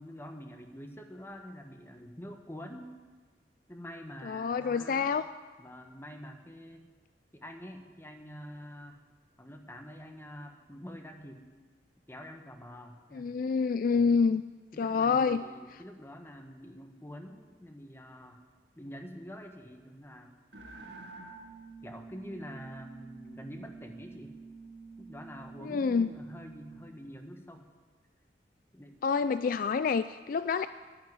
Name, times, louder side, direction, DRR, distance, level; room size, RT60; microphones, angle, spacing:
voice 1, 0.0-2.9 3.7-5.2 5.6-6.9 7.3-9.0 9.4-11.4 12.1-13.3 13.9-14.2 14.7-18.4 18.8-20.4 21.8-24.3 25.0-27.6 28.7-29.0, equal, 15° left, 5 dB, 1.3 m, -46 dB
voice 2, 4.2-5.2 13.1-14.4 14.8-15.4 25.6-26.1 29.0-30.7, left 5 dB, 50° left, 13 dB, 0.3 m, -27 dB
sound 1, 20.5-26.9, right 4 dB, 70° right, 2.1 m, -48 dB
11.0 x 10.5 x 9.5 m, 1.4 s
head